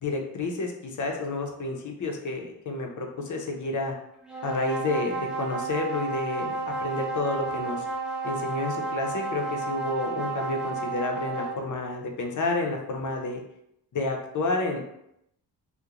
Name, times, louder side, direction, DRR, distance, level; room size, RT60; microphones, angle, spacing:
voice 1, 0.0-3.9 4.4-7.9 8.2-13.4 13.9-14.9, left 3 dB, 50° left, 2 dB, 0.5 m, -30 dB
sound 1, 4.2-11.7, right 4 dB, ahead, 0.4 m, -32 dB
2.8 x 2.1 x 2.4 m, 0.78 s
wide cardioid pair, 105°, 41 cm